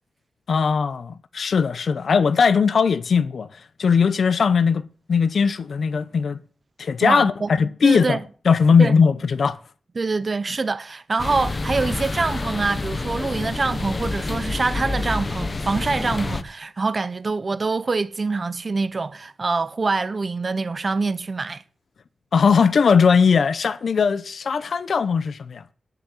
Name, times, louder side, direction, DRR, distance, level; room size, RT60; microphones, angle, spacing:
voice 1, 0.5-6.4 6.8-8.2 8.4-9.6 22.3-25.6, left 5 dB, 65° left, 0.7 m, -19 dB
voice 2, 7.0-7.5 7.8-8.2 8.8-9.0 10.0-21.6, right 3 dB, 40° right, 0.6 m, -25 dB
sound 1, 11.2-16.4, left 3 dB, 35° left, 1.0 m, -28 dB
11.0 x 6.9 x 9.2 m
wide cardioid pair, 100°, 0 cm